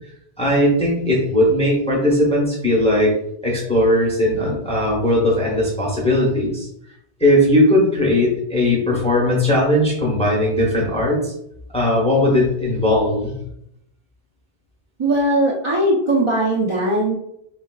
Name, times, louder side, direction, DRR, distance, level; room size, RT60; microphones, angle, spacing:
voice 1, 0.4-3.1 3.4-6.7 7.2-11.3 11.7-13.3, left 1 dB, 5° left, -4 dB, 0.6 m, -18 dB
voice 2, 15.0-17.2, right 1 dB, 40° right, -6 dB, 0.5 m, -19 dB
3.5 x 2.3 x 2.2 m, 0.74 s
omnidirectional pair, 1.1 m